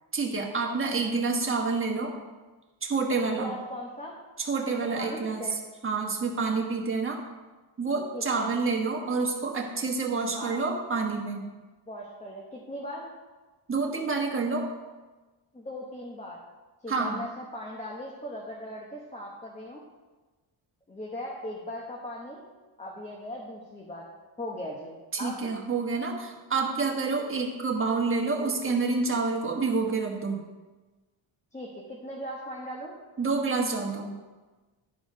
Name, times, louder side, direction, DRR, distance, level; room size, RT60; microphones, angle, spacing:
voice 1, 0.1-2.1 2.8-3.5 4.4-5.4 5.8-7.2 7.8-11.5 13.7-14.7 16.9-17.2 25.1-30.4 33.2-34.1, right 4 dB, 25° right, 0 dB, 1.4 m, -28 dB
voice 2, 3.2-4.1 4.8-5.6 8.1-8.5 10.3-10.6 11.9-13.1 15.5-16.4 16.8-19.8 20.9-22.5 22.8-24.1 24.4-25.4 31.5-33.0, left 1 dB, 15° left, -2 dB, 1.0 m, -38 dB
11.5 x 4.8 x 5.2 m, 1.2 s
wide cardioid pair, 140°, 48 cm